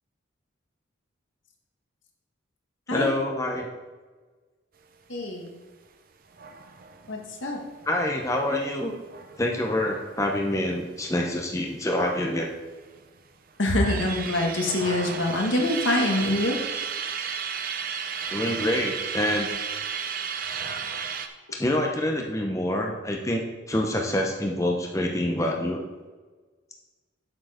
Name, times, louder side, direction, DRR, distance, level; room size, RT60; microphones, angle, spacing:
voice 1, 2.9-3.7 7.9-8.9 9.4-12.5 18.3-19.5 21.5-23.4 23.7-25.8, left 1 dB, 15° left, 1 dB, 0.7 m, -26 dB
voice 2, 5.1-5.5 7.1-7.6 13.6-16.5, left 1 dB, 75° left, 1 dB, 1.6 m, -25 dB
sound 1, 6.3-11.5 11.7-11.8 12.1-13.0 13.5-21.3, right 6 dB, 45° right, 0.7 m, -34 dB
7.7 x 6.8 x 5.0 m, 1.3 s
head